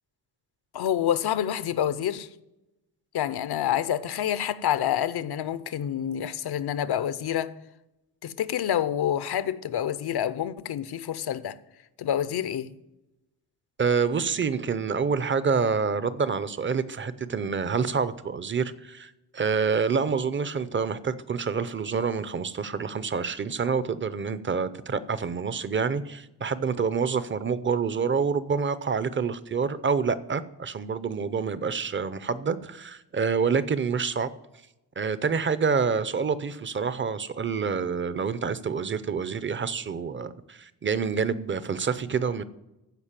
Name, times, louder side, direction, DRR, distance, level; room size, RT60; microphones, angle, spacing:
voice 1, 0.7-2.3 3.1-7.5 8.2-11.6 12.0-12.8, left 10 dB, 75° left, 0.7 m, -27 dB
voice 2, 13.8-34.3 35.0-42.4, right 5 dB, 30° right, 0.6 m, -27 dB
15.0 x 5.2 x 7.4 m
wide cardioid pair, 145°, 39 cm